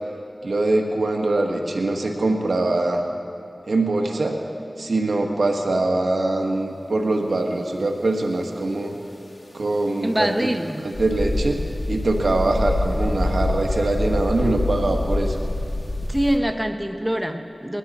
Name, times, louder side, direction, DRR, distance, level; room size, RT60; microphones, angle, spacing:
voice 1, 0.4-3.0 3.7-4.4 4.8-8.9 9.5-10.5 10.8-11.6 11.9-15.4, right 2 dB, 85° right, 2 dB, 1.4 m, -23 dB
voice 2, 10.0-10.9 16.0-17.8, equal, 10° right, 6 dB, 1.0 m, -24 dB
sound 1, 10.9-16.4, left 1 dB, 40° left, 1.7 m, -25 dB
20.5 x 14.5 x 4.2 m, 2.8 s
wide cardioid pair, 45°, 0 cm